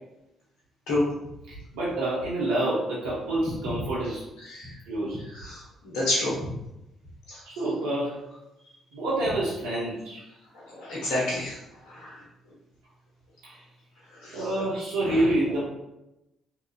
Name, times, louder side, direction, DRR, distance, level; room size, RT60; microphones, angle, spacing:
voice 1, 1.5-4.3 4.9-5.2 7.5-8.1 8.9-10.2 13.4-13.6 14.3-15.6, right 1 dB, 75° right, -6 dB, 0.5 m, -27 dB
voice 2, 5.3-6.3 7.3-7.4 10.7-11.6 11.9-12.2 14.2-14.4 15.0-15.3, left 1 dB, 70° left, -5 dB, 0.9 m, -29 dB
2.8 x 2.4 x 2.2 m, 0.92 s
hypercardioid pair, 45°, 0 cm